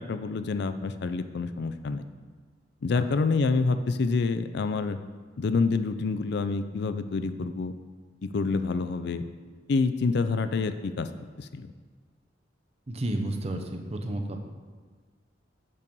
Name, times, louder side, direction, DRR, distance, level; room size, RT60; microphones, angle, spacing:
voice 1, 0.0-2.1 2.8-5.0 5.4-7.7 8.2-9.2 9.7-11.1 11.4-11.7, left 4 dB, 60° left, 10 dB, 0.4 m, -27 dB
voice 2, 12.9-14.5, right 1 dB, 35° right, 4 dB, 0.7 m, -31 dB
6.8 x 5.5 x 5.3 m, 1.5 s
head